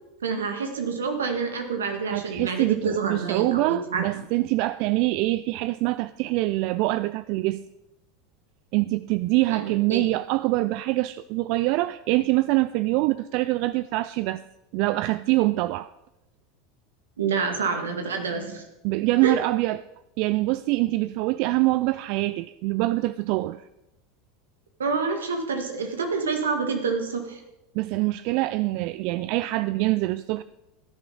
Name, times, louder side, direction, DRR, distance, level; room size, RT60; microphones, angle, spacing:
voice 1, 0.2-4.2 9.5-10.0 17.2-18.6 19.2-19.4 24.8-27.4, right 5 dB, 80° right, 1.8 m, -28 dB
voice 2, 2.1-7.6 8.7-14.4 14.7-15.9 18.8-19.8 20.2-23.6 27.7-30.4, right 19 dB, 55° right, 0.3 m, -24 dB
16.5 x 10.5 x 3.9 m
hypercardioid pair, 80°, 0 cm